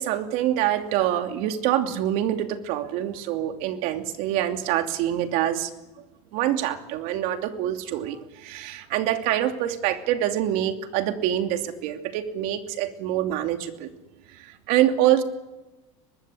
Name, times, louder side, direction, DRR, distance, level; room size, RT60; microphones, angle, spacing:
voice 1, 0.0-5.7 6.3-13.9 14.4-15.2, right 12 dB, 65° right, 5 dB, 2.8 m, -25 dB
23.5 x 21.0 x 8.6 m, 1.1 s
supercardioid pair, 120°, 16 cm